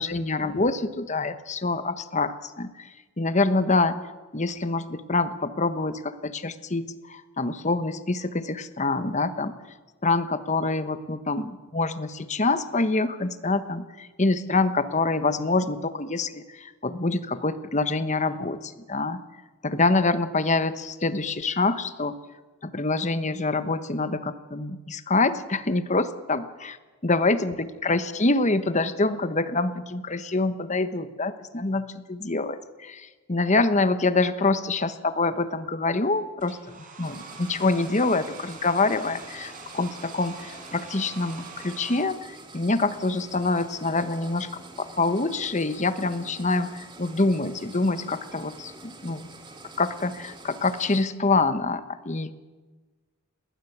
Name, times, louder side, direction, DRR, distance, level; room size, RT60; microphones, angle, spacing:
voice 1, 0.0-2.9 3.2-4.0 4.3-9.5 10.0-19.2 19.6-22.1 22.6-26.8 27.0-36.6 37.0-49.2 49.8-52.3, left 3 dB, 35° left, 12 dB, 1.1 m, -26 dB
Domestic sounds home sounds, 36.4-42.0, right 4 dB, 40° right, 4.8 m, -44 dB
sound 1, 37.0-51.0, right 3 dB, 20° right, 2.2 m, -46 dB
19.5 x 19.5 x 8.1 m, 1.3 s
head